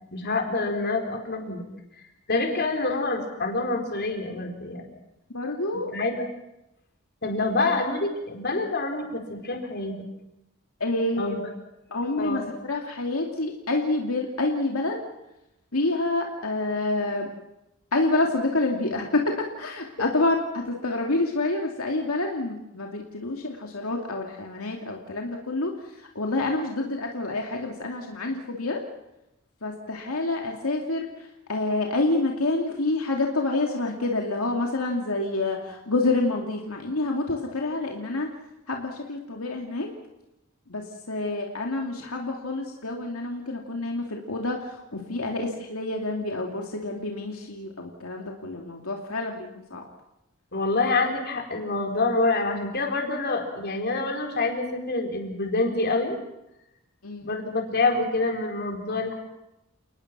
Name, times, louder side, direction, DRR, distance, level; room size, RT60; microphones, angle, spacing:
voice 1, 0.1-1.6 2.3-4.8 5.9-6.2 7.2-10.1 11.2-11.4 12.2-12.5 20.0-20.1 50.5-56.2 57.2-59.1, left 3 dB, 50° left, 3 dB, 4.4 m, -26 dB
voice 2, 5.3-5.9 10.8-11.4 11.9-12.4 12.7-15.0 15.7-17.3 17.9-25.7 26.1-28.8 29.6-31.1 31.5-38.3 38.7-39.9 40.7-49.8 57.0-57.3, left 2 dB, 80° left, 1 dB, 2.6 m, -28 dB
30.0 x 19.5 x 6.1 m, 0.91 s
head